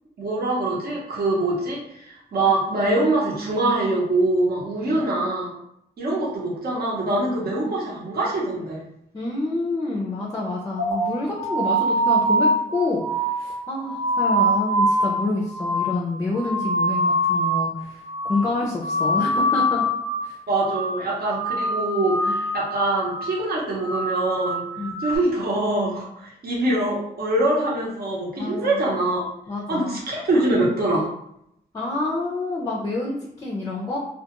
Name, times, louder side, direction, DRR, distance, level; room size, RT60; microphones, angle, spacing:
voice 1, 0.2-5.5 6.0-8.9 20.5-24.6 25.0-29.3 29.7-31.1, right 2 dB, 70° right, -5 dB, 0.8 m, -24 dB
voice 2, 9.1-13.0 13.3-18.0 18.3-19.9 20.2-20.3 24.8-25.0 28.4-28.8 29.5-30.0 31.7-34.0, left 2 dB, 20° left, -3 dB, 0.4 m, -27 dB
sound 1, 10.8-17.8 18.0-18.5 18.8-20.3 20.6-21.0 21.3-22.8 23.1-23.5 23.8-25.2, right 1 dB, 85° right, 1.1 m, -24 dB
2.3 x 2.2 x 2.9 m, 0.76 s
cardioid pair, 90°, 17 cm